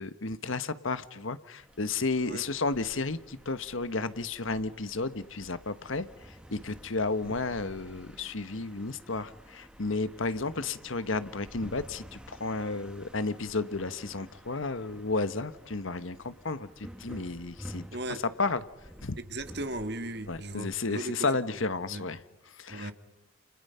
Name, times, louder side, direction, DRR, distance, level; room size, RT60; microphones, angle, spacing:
voice 1, 0.0-18.6 19.0-19.2 20.3-22.9, left 3 dB, 70° left, 1.2 m, -33 dB
sound 1, 1.6-20.8, equal, 5° right, 1.5 m, -51 dB
voice 2, 17.9-18.2 19.3-21.3 21.9-22.1 22.7-22.9, right 1 dB, 50° right, 1.8 m, -37 dB
30.0 x 30.0 x 5.7 m
head